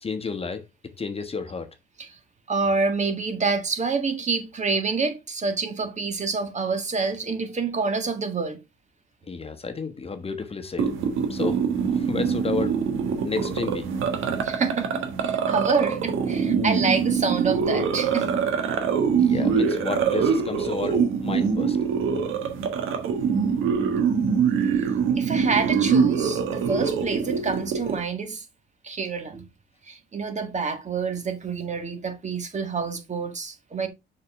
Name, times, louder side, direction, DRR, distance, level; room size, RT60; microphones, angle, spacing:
voice 1, 0.0-0.6 1.0-1.7 9.2-10.9 11.3-12.8 13.2-13.9 19.2-21.8, left 4 dB, 30° left, 1.2 m, -31 dB
voice 2, 2.5-8.6 14.4-18.6 23.0-23.1 25.2-28.5 28.8-29.5 29.9-33.9, right 4 dB, 35° right, 1.8 m, -27 dB
sound 1, 10.8-28.0, right 6 dB, 85° right, 1.4 m, -24 dB
6.8 x 5.7 x 3.5 m
cardioid pair, 90°, 20 cm